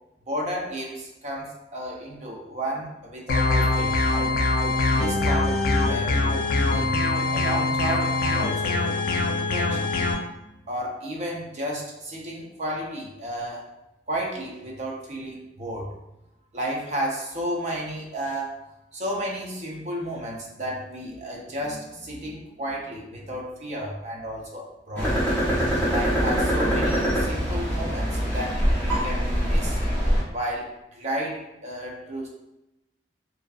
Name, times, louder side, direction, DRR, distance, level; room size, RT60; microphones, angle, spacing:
voice 1, 0.3-4.4 4.9-5.6 5.9-7.0 7.3-9.0 9.5-9.9 10.7-13.6 14.1-15.9 16.5-18.6 18.9-25.2 25.9-29.8 30.3-32.3, right 1 dB, 40° right, -2 dB, 0.5 m, -32 dB
sound 1, 3.3-10.1, left 2 dB, 50° left, 0.3 m, -23 dB
sound 2, 25.0-30.2, equal, 10° left, 0.9 m, -23 dB
2.5 x 2.4 x 2.3 m, 0.93 s
head